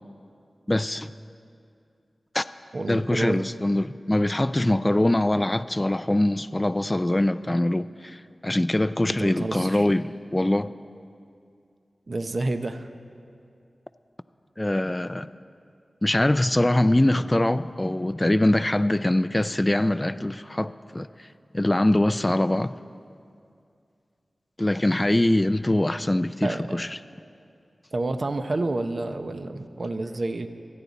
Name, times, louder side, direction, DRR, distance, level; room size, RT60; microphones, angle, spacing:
voice 1, 0.7-1.1 2.3-2.5 2.9-10.7 14.6-15.3 16.0-21.3 21.5-22.7 24.6-26.9, left 1 dB, 20° left, 12 dB, 0.3 m, -23 dB
voice 2, 2.7-3.4 9.1-9.9 12.1-12.9 26.4-26.8 27.9-30.5, right 2 dB, 55° right, 8 dB, 0.7 m, -29 dB
28.0 x 9.5 x 4.0 m, 2.4 s
wide cardioid pair, 80°, 0 cm